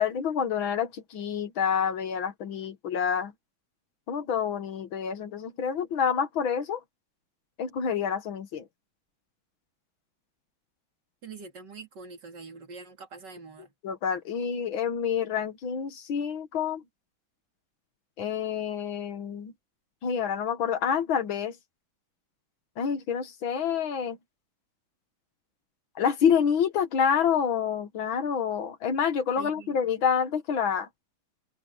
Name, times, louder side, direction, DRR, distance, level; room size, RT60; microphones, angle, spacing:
voice 1, 0.0-3.3 4.1-6.8 7.6-8.7 13.8-16.8 18.2-19.5 20.0-21.6 22.8-24.2 26.0-30.9, left 7 dB, 80° left, 2.3 m, -28 dB
voice 2, 11.2-13.7 29.4-29.8, right 4 dB, 60° right, 3.0 m, -44 dB
omnidirectional pair, 2.1 m